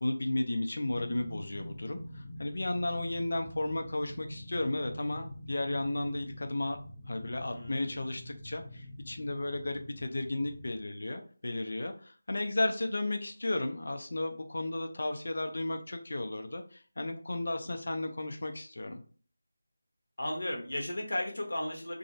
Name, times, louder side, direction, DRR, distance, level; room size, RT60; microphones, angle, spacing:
voice 1, 0.0-6.8 7.1-19.0, left 2 dB, 65° left, 6 dB, 0.4 m, -34 dB
sound 1, 0.9-10.8, left 1 dB, 5° left, 0.5 m, -45 dB
voice 2, 7.4-8.1 20.2-22.0, left 1 dB, 80° left, 1 dB, 0.9 m, -35 dB
3.6 x 2.0 x 2.5 m, 0.41 s
figure-of-eight pair, 170°, 0 cm